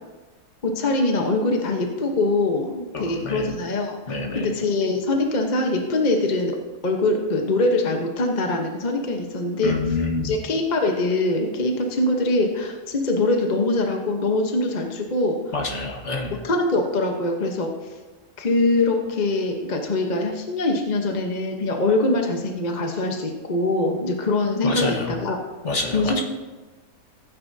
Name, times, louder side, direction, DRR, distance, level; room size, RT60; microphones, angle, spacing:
voice 1, 0.6-6.6 6.8-9.7 10.2-15.5 16.4-17.9 18.4-25.4 25.9-26.2, left 2 dB, 35° left, 2 dB, 1.0 m, -23 dB
voice 2, 2.9-3.5 4.1-4.5 9.6-10.4 15.5-16.4 24.6-25.2 25.6-26.2, left 3 dB, 55° left, 1 dB, 1.7 m, -27 dB
16.0 x 9.4 x 2.7 m, 1.3 s
omnidirectional pair, 1.5 m